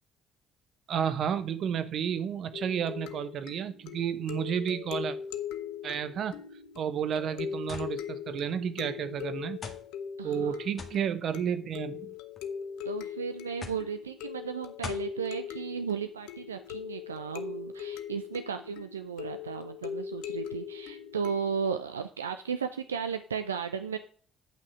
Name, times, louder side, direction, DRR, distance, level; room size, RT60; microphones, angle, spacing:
voice 1, 0.9-5.2 5.8-6.3 6.8-9.6 10.2-12.1, right 8 dB, 50° right, 1.0 m, -31 dB
sound 1, 2.5-21.7, left 8 dB, 65° left, 0.7 m, -40 dB
sound 2, 7.7-7.9 8.8-8.9 9.6-9.9 10.8-11.0 12.0-12.4 13.6-13.9 14.8-15.1, left 4 dB, 40° left, 2.0 m, -40 dB
voice 2, 10.2-10.6 12.9-24.0, right 6 dB, 85° right, 0.4 m, -35 dB
9.1 x 5.8 x 4.7 m
figure-of-eight pair, 50°, 0 cm